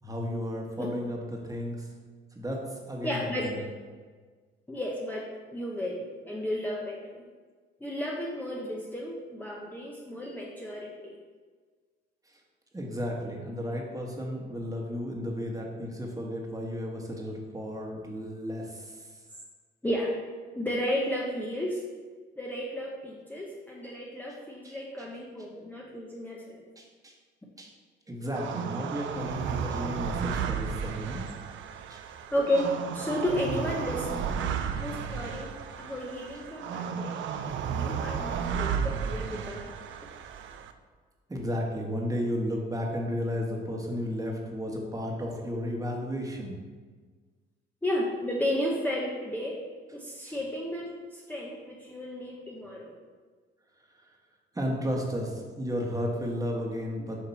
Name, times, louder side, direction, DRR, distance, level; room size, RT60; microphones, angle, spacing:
voice 1, 0.0-1.9 2.3-3.6 12.3-12.4 12.7-19.1 24.6-24.7 26.8-27.1 27.6-27.7 28.1-31.2 31.9-32.0 41.3-46.6 50.3-50.4 53.9-54.1 54.5-57.2, equal, 15° right, 0 dB, 1.3 m, -33 dB
voice 2, 3.0-3.5 4.7-7.2 7.8-11.2 19.8-20.1 20.5-21.8 22.4-26.6 32.3-34.4 34.8-37.2 37.7-39.7 47.8-49.6 49.9-53.0, equal, 10° left, -3 dB, 0.8 m, -33 dB
sound 1, 28.3-40.7, right 7 dB, 75° right, 0.5 m, -33 dB
7.1 x 2.9 x 5.6 m, 1.5 s
cardioid pair, 90°, 20 cm